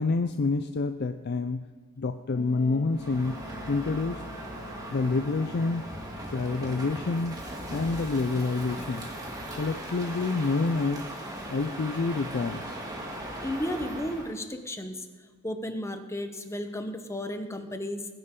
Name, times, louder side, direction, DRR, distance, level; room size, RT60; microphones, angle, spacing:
voice 1, 0.0-1.7 2.0-3.4 3.7-4.2 4.9-5.9 6.3-7.4 7.7-9.1 9.6-11.1 11.5-12.8, left 3 dB, 55° left, 8 dB, 0.5 m, -28 dB
Wind instrument woodwind instrument, 2.3-7.1, left 1 dB, 35° left, 1.0 m, -46 dB
Crow, 2.9-14.4, right 1 dB, 20° right, 1.9 m, -39 dB
voice 2, 13.4-15.1 15.4-18.1, left 1 dB, 15° left, 7 dB, 1.0 m, -33 dB
21.0 x 9.9 x 3.8 m, 1.3 s
head